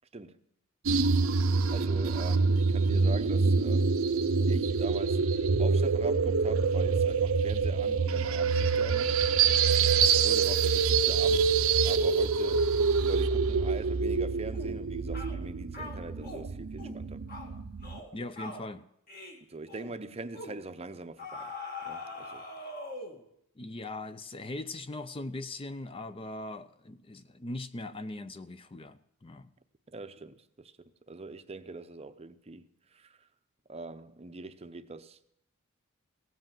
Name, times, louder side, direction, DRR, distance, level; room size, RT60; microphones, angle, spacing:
sound 1, 0.9-18.0, right 5 dB, 65° right, 0.6 m, -26 dB
voice 1, 1.7-3.9 4.5-5.3 5.6-9.2 10.2-11.5 11.8-12.7 13.0-17.2 19.5-21.5 21.8-22.5 29.9-33.3 33.7-35.2, right 3 dB, 30° right, 0.6 m, -42 dB
sound 2, 14.5-14.8 15.1-15.4 15.7-16.5 16.8-17.0 17.3-17.5 17.8-18.1 18.4-18.6 19.1-19.4 19.7-19.9 20.3-20.6 21.2-23.2, left 2 dB, 40° left, 2.0 m, -42 dB
voice 2, 18.1-18.8 23.6-29.5, left 2 dB, 25° left, 0.5 m, -40 dB
17.0 x 7.9 x 7.5 m
head